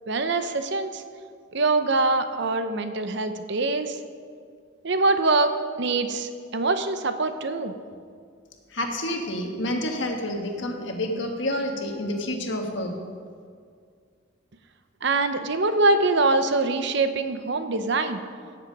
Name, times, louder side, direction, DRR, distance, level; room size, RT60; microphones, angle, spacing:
voice 1, 0.1-1.0 1.5-4.0 4.8-7.7 15.0-18.2, right 3 dB, 55° right, 9 dB, 0.8 m, -24 dB
voice 2, 8.7-12.9, left 1 dB, 60° left, 2 dB, 1.5 m, -29 dB
17.0 x 7.6 x 5.3 m, 2.1 s
head